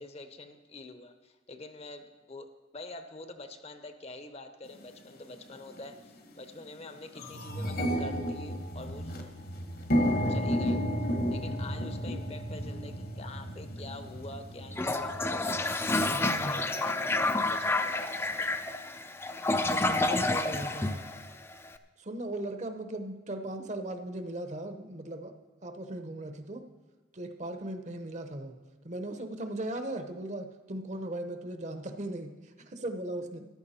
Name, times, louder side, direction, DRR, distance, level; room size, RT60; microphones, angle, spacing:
voice 1, 0.0-9.1 10.3-10.8 11.3-15.2 16.1-18.5, left 2 dB, 35° left, 8 dB, 0.8 m, -46 dB
sound 1, 4.8-4.9 5.7-5.9 6.3-6.4 6.7-16.4, equal, 55° left, 1.3 m, -33 dB
Toilet flush, 14.7-21.7, left 2 dB, 15° left, 0.5 m, -29 dB
voice 2, 16.1-16.6 19.6-21.0 22.0-25.3 25.6-26.7 27.1-28.5 28.8-33.5, right 1 dB, 40° right, 7 dB, 0.9 m, -38 dB
14.0 x 11.5 x 4.3 m, 1.3 s
head